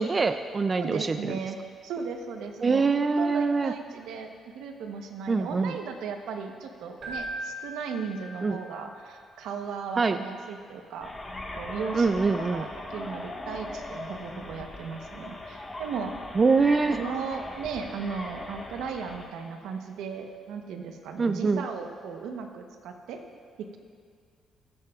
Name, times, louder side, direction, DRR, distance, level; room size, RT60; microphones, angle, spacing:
voice 1, 0.0-1.4 2.6-3.7 5.3-5.7 8.4-8.6 10.0-10.2 11.9-12.7 16.4-17.0 21.2-21.6, right 4 dB, 30° right, 9 dB, 0.3 m, -24 dB
voice 2, 0.7-11.1 11.5-12.1 12.4-16.2 16.9-23.2 23.6-23.8, right 5 dB, 85° right, 5 dB, 0.9 m, -36 dB
Keyboard (musical), 7.0-8.8, right 1 dB, 60° right, 2.3 m, -38 dB
sound 1, 11.0-19.3, left 1 dB, 20° left, 1.5 m, -39 dB
20.0 x 7.9 x 2.4 m, 2.1 s
cardioid pair, 95°, 0 cm